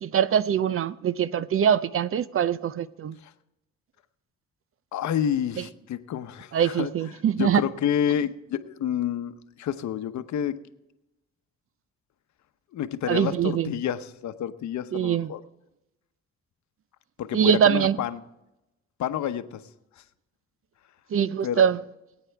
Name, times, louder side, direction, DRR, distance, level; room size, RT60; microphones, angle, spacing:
voice 1, 0.0-3.2 5.6-5.7 6.5-7.6 13.1-13.7 14.9-15.3 17.3-18.0 21.1-21.8, right 8 dB, 45° right, 0.6 m, -23 dB
voice 2, 4.9-6.9 7.4-9.3 9.6-10.6 12.7-15.4 17.2-18.2 19.0-19.6 21.4-21.7, left 9 dB, 70° left, 0.9 m, -29 dB
21.5 x 9.1 x 3.4 m
cardioid pair, 90°, 30 cm